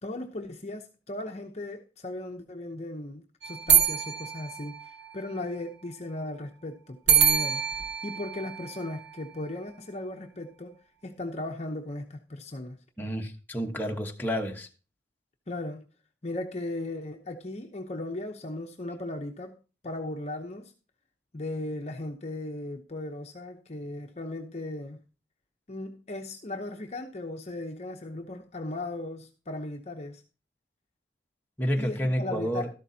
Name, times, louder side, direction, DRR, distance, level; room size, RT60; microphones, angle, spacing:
voice 1, 0.0-4.8 5.1-7.6 8.0-10.8 11.0-12.8 15.5-15.8 16.2-19.6 19.8-20.7 21.3-25.0 25.7-30.2 31.8-32.7, left 2 dB, 35° left, 0.8 m, -37 dB
sound 1, 3.4-5.4 7.1-9.5, right 8 dB, 80° right, 1.0 m, -26 dB
voice 2, 13.0-14.7 31.6-32.7, equal, 10° left, 1.1 m, -30 dB
13.0 x 11.5 x 2.8 m
head